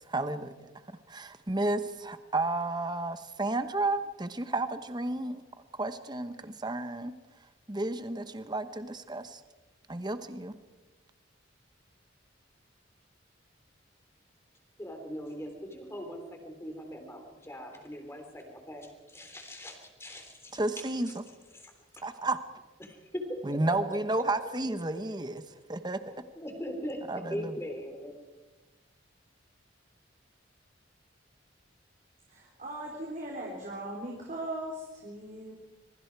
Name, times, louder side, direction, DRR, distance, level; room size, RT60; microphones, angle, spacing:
voice 1, 0.1-0.5 1.1-5.4 5.8-7.1 7.7-9.2 9.9-10.5 20.6-21.1 22.0-22.4 23.5-25.4 25.7-26.1 27.1-27.3, right 2 dB, 20° right, 10 dB, 1.1 m, -32 dB
voice 2, 14.8-22.0 22.8-24.2 24.9-25.0 26.3-28.2, equal, 15° left, 4 dB, 3.5 m, -41 dB
voice 3, 32.3-35.5, right 1 dB, 45° right, -2 dB, 3.7 m, -39 dB
25.5 x 23.0 x 4.8 m, 1.2 s
head